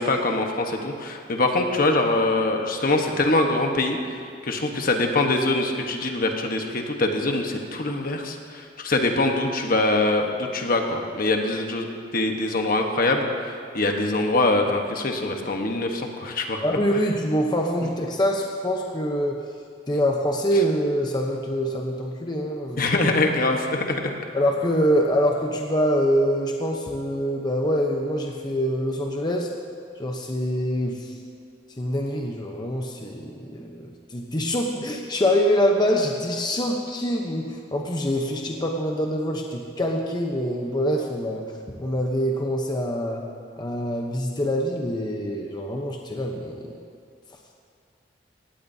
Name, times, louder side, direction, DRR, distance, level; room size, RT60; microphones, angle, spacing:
voice 1, 0.0-4.0 4.4-11.9 12.1-16.6 22.8-24.1, left 2 dB, 50° left, 3 dB, 1.2 m, -23 dB
voice 2, 16.6-19.4 19.9-22.9 24.3-29.5 30.0-31.1 31.8-41.4 41.8-43.2 43.6-46.7, equal, 25° left, 1 dB, 0.9 m, -25 dB
18.0 x 16.5 x 2.8 m, 2.4 s
head